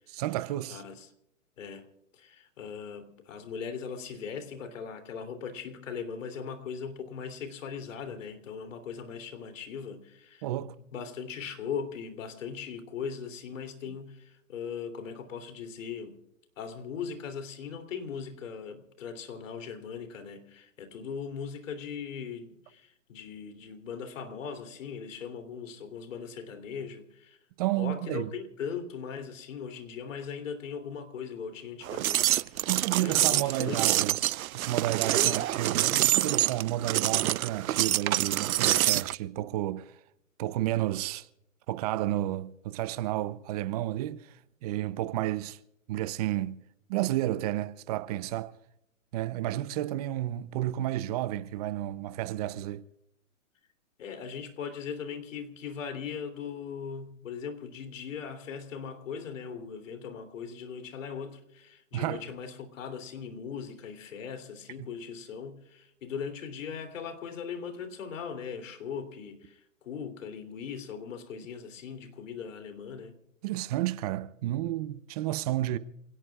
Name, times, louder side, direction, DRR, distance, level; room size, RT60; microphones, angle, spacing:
voice 1, 0.1-0.8 10.4-10.7 27.6-28.3 32.7-34.2 34.5-40.0 40.4-41.3 41.7-45.6 45.9-46.6 46.9-48.5 49.1-52.8 61.9-62.2 64.8-64.9 73.4-75.8, right 14 dB, 30° right, 0.7 m, -31 dB
voice 2, 0.7-1.1 1.6-1.8 2.1-10.5 10.9-16.2 16.6-27.4 27.8-32.7 33.0-33.8 35.2-35.4 54.0-73.2, left 6 dB, 65° left, 3.2 m, -39 dB
tools rummaging through tools ext metal debris, 31.8-39.2, right 13 dB, 85° right, 0.5 m, -26 dB
28.0 x 17.5 x 2.4 m
hypercardioid pair, 145°, 41 cm